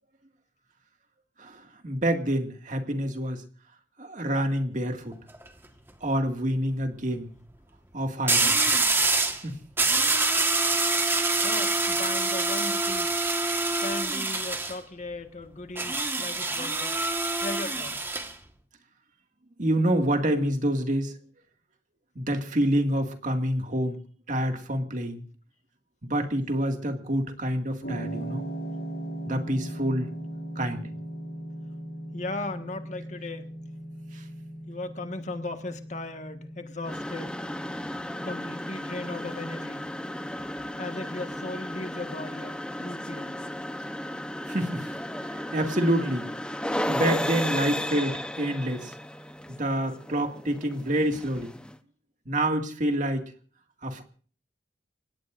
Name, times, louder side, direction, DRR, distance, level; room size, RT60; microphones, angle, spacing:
voice 1, 1.4-3.4 4.0-5.1 6.0-7.3 7.9-8.6 9.4-9.6 19.6-21.1 22.2-24.0 24.3-25.2 26.0-28.4 29.3-30.1 30.6-30.8 44.5-44.9 45.3-46.3 46.9-48.9 49.5-51.5 52.3-53.3 53.8-54.0, right 1 dB, 45° right, 5 dB, 2.1 m, -27 dB
sound 1, 5.1-5.5 8.3-9.4 9.8-14.8 15.8-18.3, right 3 dB, 15° right, 1.5 m, -25 dB
voice 2, 11.4-13.2 13.8-17.0 17.4-18.1 32.1-33.5 34.7-37.4 38.2-39.9 40.8-43.4, left 2 dB, 45° left, 6 dB, 1.6 m, -37 dB
sound 2, 27.8-46.1, right 1 dB, 75° left, 6.5 m, -40 dB
sound 3, 36.8-51.8, left 1 dB, 5° left, 0.8 m, -34 dB
30.0 x 17.0 x 2.6 m, 0.43 s
head